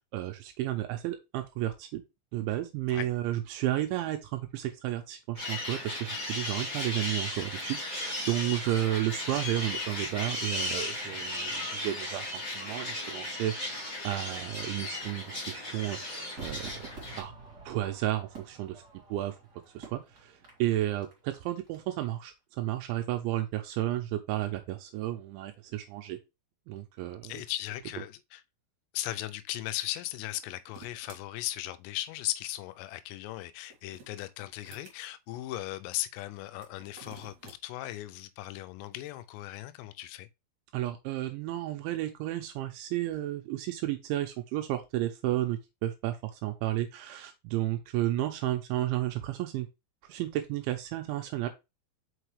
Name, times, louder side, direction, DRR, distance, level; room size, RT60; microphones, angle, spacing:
voice 1, 0.0-2.0 2.3-16.9 17.2-17.3 17.7-18.8 19.1-19.4 19.7-26.2 26.7-27.4 40.7-49.7 50.0-51.5, right 14 dB, 85° right, 2.8 m, -32 dB
sound 1, 5.4-17.2, left 1 dB, 30° left, 1.8 m, -36 dB
Crowd / Fireworks, 16.4-21.8 22.0-22.1, right 4 dB, 30° right, 1.9 m, -48 dB
voice 2, 27.2-28.4 28.9-40.3, left 15 dB, 90° left, 3.2 m, -37 dB
sound 2, 30.2-31.2 33.5-35.0 36.5-37.6, right 4 dB, 55° right, 2.2 m, -52 dB
6.0 x 5.5 x 3.2 m
omnidirectional pair, 5.8 m